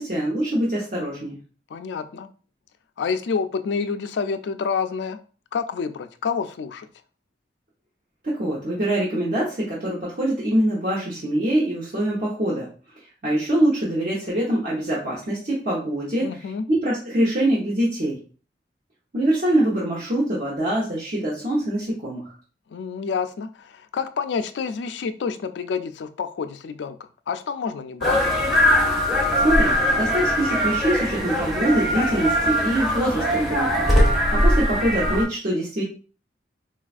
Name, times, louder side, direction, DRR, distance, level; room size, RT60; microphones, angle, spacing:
voice 1, 0.0-1.4 8.2-12.7 13.2-16.3 16.7-18.2 19.1-22.2 29.4-35.8, right 1 dB, 50° right, -7 dB, 0.9 m, -24 dB
voice 2, 1.7-2.3 3.0-5.2 5.5-6.9 16.2-16.7 22.7-26.9 27.3-28.2, left 5 dB, 75° left, 10 dB, 0.3 m, -28 dB
sound 1, 28.0-35.2, equal, ahead, 0.6 m, -21 dB
4.1 x 2.3 x 2.4 m, 0.38 s
head